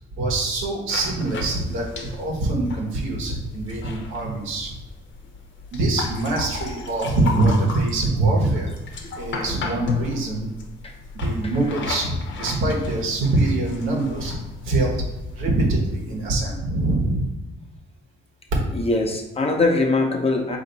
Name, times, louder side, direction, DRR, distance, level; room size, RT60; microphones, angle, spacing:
voice 1, 0.2-4.8 5.7-8.7 9.2-10.5 11.1-14.3 14.6-15.0 15.4-17.3, right 2 dB, 85° right, -2 dB, 1.4 m, -23 dB
sound 1, 0.9-16.6, left 4 dB, 70° left, 0.8 m, -35 dB
voice 2, 18.7-20.6, left 2 dB, 30° left, 2 dB, 0.9 m, -22 dB
4.3 x 2.9 x 4.0 m, 1.0 s
cardioid pair, 90°, 20 cm